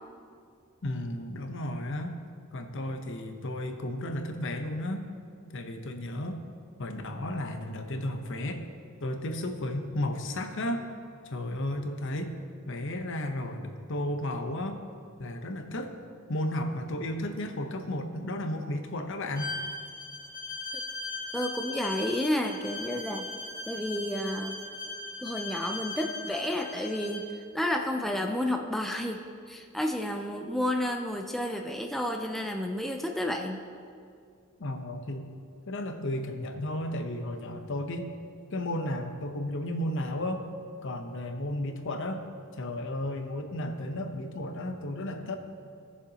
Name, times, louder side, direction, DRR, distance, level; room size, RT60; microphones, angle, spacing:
voice 1, 0.8-2.2 2.5-5.0 5.5-6.4 6.8-8.6 9.0-10.8 11.3-12.3 12.7-14.8 15.2-15.9 16.3-19.5 34.6-35.3 35.7-38.1 38.5-40.5 40.8-42.2 42.6-45.4, left 1 dB, 60° left, 6 dB, 0.8 m, -33 dB
Bowed string instrument, 19.4-27.3, left 2 dB, 45° left, 1.6 m, -38 dB
voice 2, 21.3-23.3 23.6-24.6 25.2-29.2 29.5-33.7, left 1 dB, ahead, 2 dB, 0.4 m, -31 dB
17.5 x 6.9 x 2.8 m, 2.3 s
head